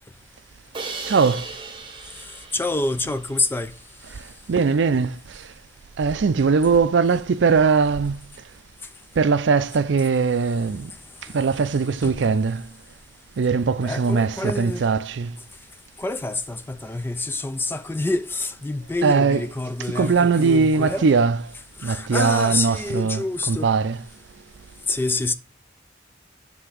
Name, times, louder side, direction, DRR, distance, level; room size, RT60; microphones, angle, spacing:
Crash cymbal, 0.7-3.8, right 4 dB, 25° right, 0.9 m, -37 dB
voice 1, 1.0-1.5 4.1-4.2 4.5-5.5 6.0-8.3 9.2-10.9 11.3-12.7 13.4-15.4 19.0-19.5 19.9-21.4 21.8-24.0, right 5 dB, 70° right, 0.4 m, -20 dB
voice 2, 2.2-3.8 12.0-12.3 13.8-14.9 16.0-21.1 21.8-23.7 24.9-25.3, left 2 dB, 10° left, 0.3 m, -27 dB
7.8 x 3.5 x 4.9 m
head